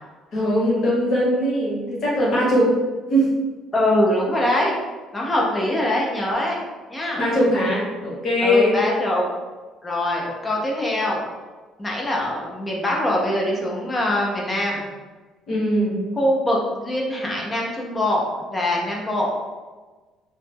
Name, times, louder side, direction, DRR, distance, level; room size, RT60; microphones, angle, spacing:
voice 1, 0.3-2.7 3.1-3.4 7.2-8.8 15.5-16.0, equal, 40° left, -6 dB, 0.8 m, -20 dB
voice 2, 3.7-4.7 5.1-6.6 6.9-7.2 8.4-9.2 9.8-11.2 11.8-14.8 16.2-19.4, left 1 dB, 10° left, -2 dB, 0.3 m, -23 dB
2.0 x 2.0 x 3.2 m, 1.3 s
cardioid pair, 180°, 0 cm